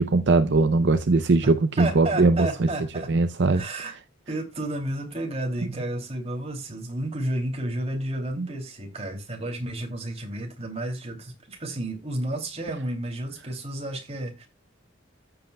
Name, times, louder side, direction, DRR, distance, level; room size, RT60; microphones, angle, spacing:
voice 1, 0.0-2.7 3.1-3.6 8.4-8.5, right 3 dB, 65° right, 0.6 m, -20 dB
voice 2, 1.8-3.1 3.5-4.0 4.3-14.5, right 1 dB, 35° right, 2.8 m, -31 dB
14.5 x 7.9 x 2.3 m
head